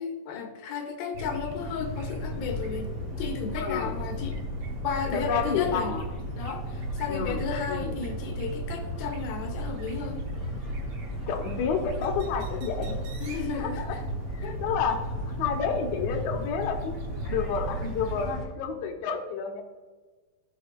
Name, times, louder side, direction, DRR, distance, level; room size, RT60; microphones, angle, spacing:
voice 1, 0.0-4.4 4.8-6.0 6.4-10.2 13.2-14.0 14.4-14.6, left 5 dB, 85° left, 5 dB, 2.6 m, -33 dB
sound 1, 1.1-18.3, right 1 dB, 75° right, 1.4 m, -36 dB
sound 2, 1.5-18.5, equal, 20° left, 2.0 m, -38 dB
voice 2, 3.6-3.9 5.1-6.1 7.1-8.0 11.3-13.0 13.5-14.0 14.3-17.0 17.3-19.6, left 6 dB, 70° left, 1 dB, 1.9 m, -30 dB
14.5 x 5.3 x 2.3 m, 1.3 s
omnidirectional pair, 4.2 m